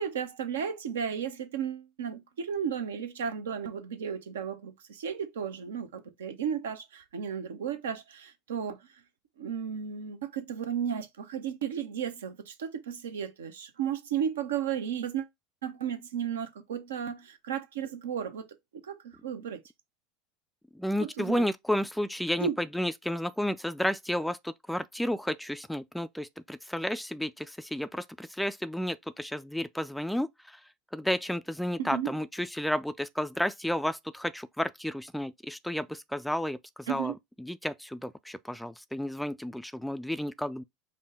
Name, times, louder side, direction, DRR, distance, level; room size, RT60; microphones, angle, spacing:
voice 1, 0.0-8.8 9.4-15.3 15.6-18.4 18.8-19.6 21.2-21.4 22.4-22.6 31.8-32.1 36.9-37.1, right 8 dB, 75° right, 0.7 m, -34 dB
voice 2, 20.7-30.6 30.9-37.1 37.4-40.6, equal, ahead, 0.3 m, -32 dB
5.2 x 2.2 x 3.6 m
figure-of-eight pair, 75°, 0 cm